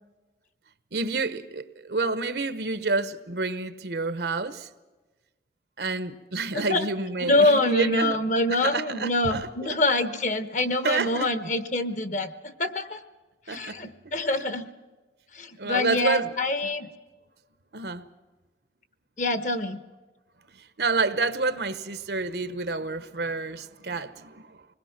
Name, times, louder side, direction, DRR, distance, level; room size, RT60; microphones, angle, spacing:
voice 1, 0.9-4.7 5.8-8.2 8.5-9.8 10.8-11.3 13.5-13.8 15.6-16.3 17.7-18.0 20.5-24.7, right 3 dB, 70° right, 1.0 m, -29 dB
voice 2, 6.5-6.9 7.2-13.0 13.5-14.7 15.3-16.9 19.2-19.8, left 2 dB, 45° left, 1.1 m, -25 dB
26.5 x 20.5 x 5.9 m
head